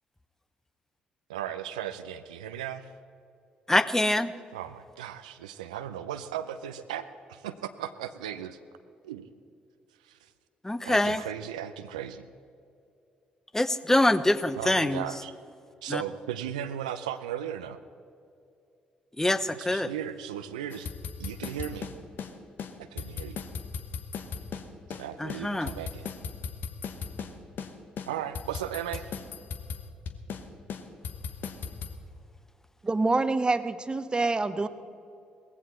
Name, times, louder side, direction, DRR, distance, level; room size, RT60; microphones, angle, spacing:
voice 1, 1.3-2.9 4.5-7.0 7.3-8.6 9.0-9.3 10.0-10.2 10.8-12.2 14.6-15.3 15.8-17.8 19.3-20.9 21.2-21.9 22.8-23.4 25.0-26.1 28.1-29.1, right 10 dB, 85° right, 10 dB, 0.5 m, -36 dB
voice 2, 3.7-4.3 10.6-11.2 13.5-15.0 15.9-16.0 19.2-19.9 25.2-25.7, left 1 dB, 10° left, 14 dB, 0.8 m, -24 dB
sound 1, 20.7-22.3 22.6-22.7 23.0-25.0 25.3-27.3 27.6-27.7 28.0-30.4 30.7-31.9, left 6 dB, 60° left, 1.2 m, -37 dB
voice 3, 32.8-34.7, right 3 dB, 25° right, 12 dB, 0.9 m, -26 dB
18.0 x 15.5 x 4.4 m, 2.5 s
hypercardioid pair, 45°, 4 cm